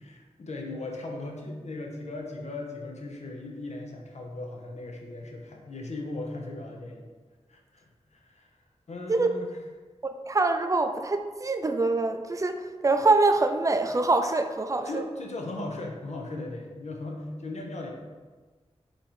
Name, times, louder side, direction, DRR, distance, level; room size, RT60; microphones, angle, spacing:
voice 1, 0.0-7.1 7.5-8.5 8.9-9.5 14.8-17.9, left 2 dB, 70° left, 0 dB, 0.8 m, -38 dB
voice 2, 10.0-15.0, right 3 dB, 30° right, 7 dB, 0.3 m, -24 dB
3.9 x 3.0 x 4.2 m, 1.4 s
wide cardioid pair, 70°, 12 cm